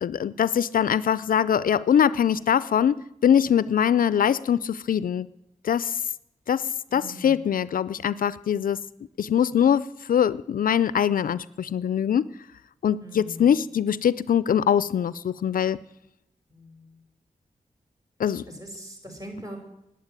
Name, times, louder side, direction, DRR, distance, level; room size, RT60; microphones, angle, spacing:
voice 1, 0.0-5.3 5.6-6.0 6.5-8.8 9.2-12.3 12.8-15.8 18.2-18.4, left 8 dB, 70° left, 0.4 m, -23 dB
voice 2, 6.9-7.5 13.0-13.6 16.5-17.0 18.5-19.6, equal, 25° right, 5.2 m, -41 dB
10.5 x 9.5 x 9.0 m
cardioid pair, 45°, 15 cm